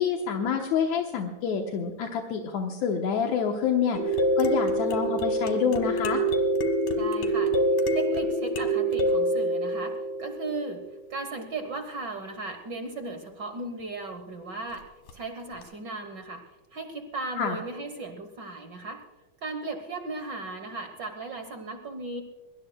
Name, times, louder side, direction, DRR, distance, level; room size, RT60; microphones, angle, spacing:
voice 1, 0.0-6.2 17.4-17.6, left 6 dB, 70° left, 2 dB, 2.3 m, -27 dB
sound 1, 3.9-10.8 15.1-15.2 15.6-15.7, right 1 dB, 90° left, 3.1 m, -26 dB
voice 2, 7.0-7.5 7.9-10.8 11.1-14.9 15.1-16.4 16.7-19.0 19.4-22.2, right 3 dB, 60° right, 7 dB, 1.1 m, -36 dB
22.0 x 19.5 x 2.2 m, 1.2 s
omnidirectional pair, 3.5 m